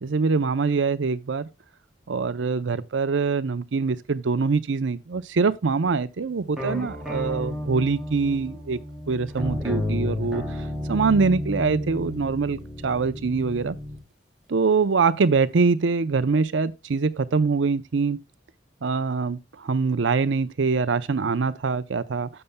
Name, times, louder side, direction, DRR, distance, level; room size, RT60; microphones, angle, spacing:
voice 1, 0.0-1.5 2.1-8.8 9.1-10.4 10.9-13.8 14.5-18.2 18.8-22.3, right 4 dB, 85° right, 0.6 m, -24 dB
sound 1, 6.6-14.0, left 1 dB, 5° right, 2.4 m, -32 dB
11.0 x 6.8 x 2.2 m
head